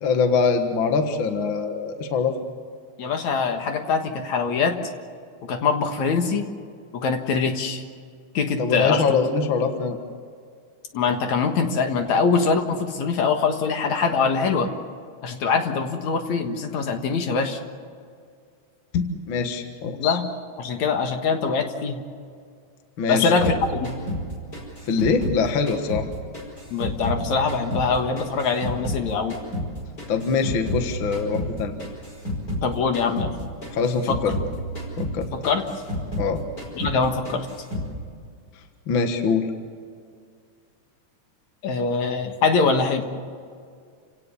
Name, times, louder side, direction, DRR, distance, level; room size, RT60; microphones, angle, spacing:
voice 1, 0.0-2.3 8.6-10.0 19.3-20.2 23.0-23.6 24.9-26.1 30.1-31.7 33.7-34.3 35.0-35.3 36.2-36.4 38.9-39.5, left 5 dB, 45° left, 6 dB, 1.9 m, -23 dB
voice 2, 3.0-4.7 5.5-6.5 6.9-7.8 8.3-9.2 10.9-14.7 15.2-17.6 18.9-19.0 20.0-20.3 20.6-22.0 23.1-23.5 23.8-23.9 26.7-29.4 32.6-33.3 34.1-34.2 35.3-35.6 36.8-37.5 41.6-43.0, left 5 dB, 65° left, 5 dB, 2.8 m, -23 dB
sound 1, 23.4-26.1 26.3-29.0 29.3-32.7 32.9-33.3 33.6-36.3 36.6-37.0 37.2-37.9, equal, 25° left, 5.5 m, -30 dB
29.0 x 17.5 x 7.0 m, 2.1 s
omnidirectional pair, 3.6 m